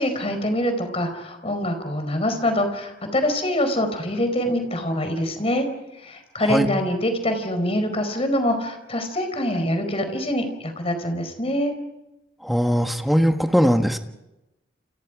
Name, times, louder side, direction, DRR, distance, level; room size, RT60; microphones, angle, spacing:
voice 1, 0.0-5.7 6.0-11.7, left 1 dB, 30° left, 7 dB, 4.8 m, -24 dB
voice 2, 12.4-14.0, equal, ahead, 5 dB, 1.5 m, -20 dB
29.5 x 29.0 x 5.1 m, 0.96 s
head